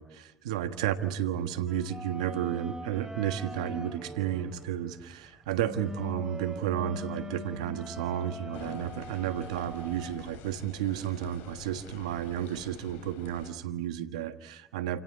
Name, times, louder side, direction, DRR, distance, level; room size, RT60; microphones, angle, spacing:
voice 1, 0.0-15.0, right 11 dB, 90° right, 10 dB, 1.5 m, -32 dB
sound 1, 1.7-10.1, left 1 dB, 20° right, 4.2 m, -42 dB
sound 2, 8.5-13.5, left 7 dB, 75° left, 3.9 m, -47 dB
28.5 x 17.5 x 9.9 m, 0.98 s
hypercardioid pair, 65°, 3 cm